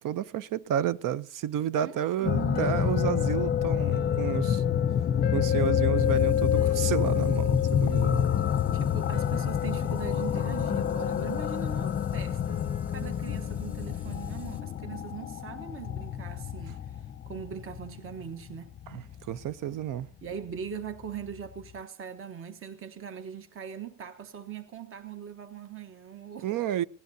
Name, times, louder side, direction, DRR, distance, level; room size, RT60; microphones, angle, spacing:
voice 1, 0.0-4.6 5.3-8.3 18.9-20.1 26.4-26.8, right 10 dB, 70° right, 0.7 m, -31 dB
voice 2, 1.8-2.7 8.7-12.6 12.9-18.7 20.2-26.5, right 7 dB, 40° right, 1.1 m, -41 dB
sound 1, 2.2-19.5 21.2-21.3 21.6-21.7, left 9 dB, 30° left, 0.6 m, -27 dB
sound 2, 6.0-14.6, left 6 dB, 5° right, 1.3 m, -46 dB
26.5 x 17.0 x 2.8 m
cardioid pair, 170°, 34 cm